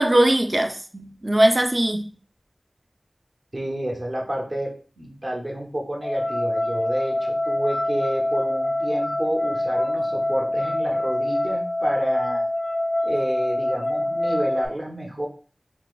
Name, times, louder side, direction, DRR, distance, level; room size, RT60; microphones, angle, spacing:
voice 1, 0.0-2.0, right 1 dB, 40° right, 0.5 m, -20 dB
voice 2, 3.5-12.5 13.0-15.3, right 1 dB, 55° right, 1.0 m, -30 dB
sound 1, 6.0-14.7, left 1 dB, 55° left, 0.3 m, -25 dB
4.6 x 2.0 x 2.3 m
wide cardioid pair, 40°, 0 cm